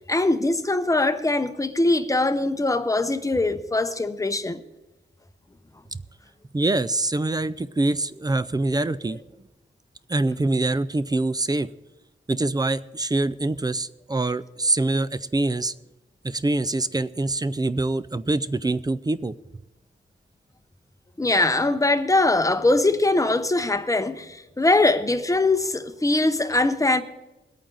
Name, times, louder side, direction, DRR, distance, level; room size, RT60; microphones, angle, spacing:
voice 1, 0.1-4.6 21.2-27.0, left 2 dB, 15° left, 0.7 m, -22 dB
voice 2, 6.5-9.2 10.1-11.7 12.3-15.7 16.2-19.3, right 2 dB, 20° right, 0.4 m, -24 dB
21.5 x 8.8 x 3.9 m
wide cardioid pair, 135°, 21 cm